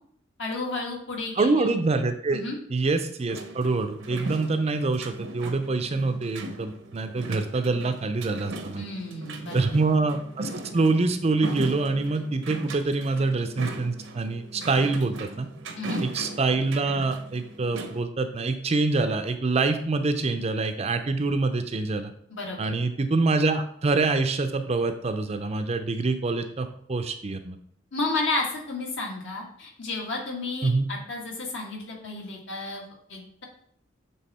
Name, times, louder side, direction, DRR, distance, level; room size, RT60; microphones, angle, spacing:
voice 1, 0.4-1.8 2.3-2.6 8.8-9.8 15.8-16.0 22.3-22.6 27.9-33.4, left 2 dB, 65° left, -2 dB, 1.9 m, -32 dB
voice 2, 1.4-2.4 2.7-8.8 9.5-15.5 16.0-22.1 22.6-27.6 30.6-30.9, right 3 dB, 30° right, 8 dB, 0.5 m, -25 dB
sound 1, 3.3-18.0, right 2 dB, 75° right, 0.7 m, -38 dB
7.1 x 3.5 x 4.2 m, 0.66 s
head